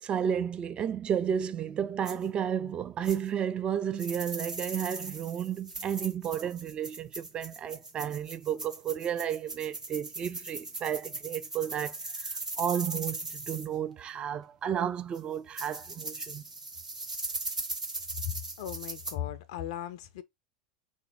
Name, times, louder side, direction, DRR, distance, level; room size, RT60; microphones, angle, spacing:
voice 1, 0.0-16.4, right 9 dB, 25° right, 0.3 m, -32 dB
sound 1, 2.0-2.1 3.0-3.2 4.0-13.7 15.1-15.2 15.6-19.1, right 2 dB, 85° right, 0.7 m, -39 dB
voice 2, 18.2-20.2, left 11 dB, 55° left, 0.4 m, -37 dB
3.1 x 2.6 x 3.5 m
figure-of-eight pair, 85°, 4 cm